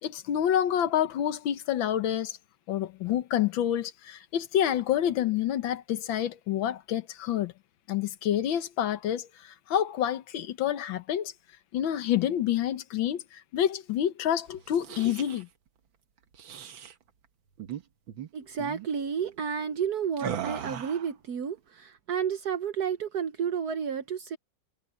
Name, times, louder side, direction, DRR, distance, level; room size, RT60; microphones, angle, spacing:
voice 1, 0.0-2.4 2.7-7.5 7.9-11.3 11.7-15.5, left 10 dB, 85° left, 1.8 m, -28 dB
sound 1, 14.6-15.4 16.3-16.9 17.6-17.8 18.1-18.3 18.6-18.9 20.2-21.1, right 9 dB, 85° right, 2.1 m, -38 dB
voice 2, 18.3-24.4, right 7 dB, 60° right, 1.3 m, -31 dB
omnidirectional pair, 2.1 m